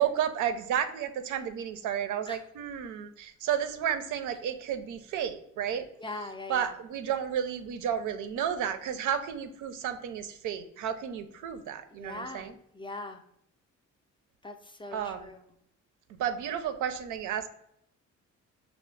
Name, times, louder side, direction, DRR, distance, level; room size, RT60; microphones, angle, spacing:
voice 1, 0.0-5.9 6.5-12.5 14.9-15.3 16.1-17.5, right 9 dB, 80° right, 9 dB, 0.5 m, -32 dB
voice 2, 6.0-6.7 11.9-13.2 14.4-15.4, left 2 dB, 15° left, 6 dB, 0.4 m, -41 dB
5.0 x 2.0 x 3.1 m, 0.73 s
cardioid pair, 90°, 30 cm